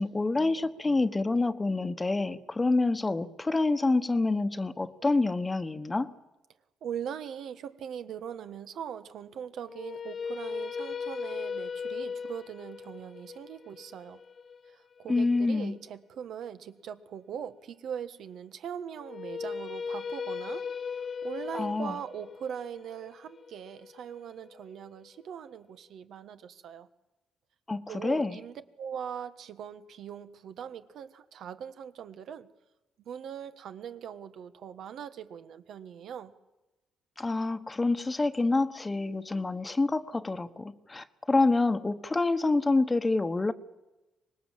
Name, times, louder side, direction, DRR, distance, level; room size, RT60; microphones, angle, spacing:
voice 1, 0.0-6.1 15.1-15.8 21.5-22.0 27.7-28.4 37.2-43.5, left 3 dB, 20° left, 13 dB, 1.2 m, -27 dB
voice 2, 6.8-14.2 14.7-20.6 21.0-26.9 27.9-32.5 33.0-36.3, right 8 dB, 70° right, 10 dB, 1.5 m, -41 dB
sound 1, 9.6-15.7 19.0-25.1, left 6 dB, 45° left, 1.2 m, -38 dB
25.0 x 20.0 x 7.5 m, 1.0 s
cardioid pair, 90°, 0 cm